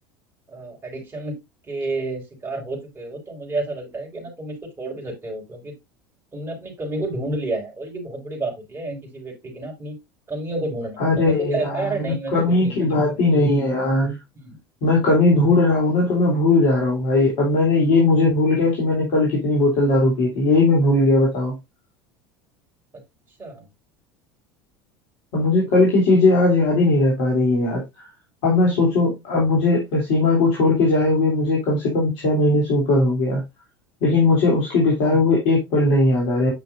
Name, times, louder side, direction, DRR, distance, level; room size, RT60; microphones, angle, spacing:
voice 1, 0.5-1.4 1.7-5.7 6.3-10.0 10.3-12.9 14.3-14.6 23.4-23.7 34.1-34.3, right 2 dB, 20° right, 4.6 m, -30 dB
voice 2, 11.0-14.2 14.8-21.5 25.3-27.8 28.4-33.4 34.0-36.5, left 2 dB, 60° left, 3.1 m, -18 dB
9.7 x 5.7 x 2.6 m
figure-of-eight pair, 75°, 11 cm